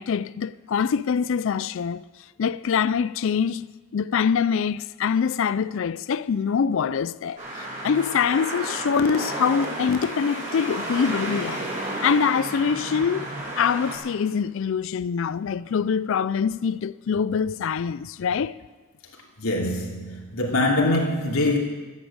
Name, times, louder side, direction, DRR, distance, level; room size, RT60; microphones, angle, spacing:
voice 1, 0.0-2.0 2.4-3.7 3.9-11.7 12.0-13.3 13.6-18.6, left 6 dB, 65° left, 0.4 m, -24 dB
sound 1, 7.4-14.0, right 1 dB, 35° right, 6.0 m, -32 dB
voice 2, 19.4-21.6, left 2 dB, 80° left, 3.0 m, -23 dB
14.0 x 9.7 x 8.8 m
head